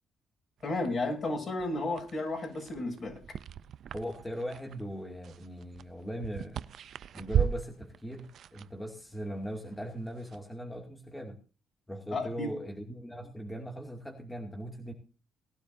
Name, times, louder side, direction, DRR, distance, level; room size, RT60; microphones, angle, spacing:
voice 1, 0.6-3.2 12.1-12.5, left 2 dB, 45° left, 1 dB, 7.4 m, -33 dB
sound 1, 0.6-10.5, right 9 dB, 65° right, 0.5 m, -38 dB
voice 2, 3.9-6.7 7.1-11.4 11.9-14.9, equal, 5° left, 1 dB, 2.4 m, -39 dB
19.5 x 12.0 x 2.7 m, 0.35 s
cardioid pair, 90°, 0 cm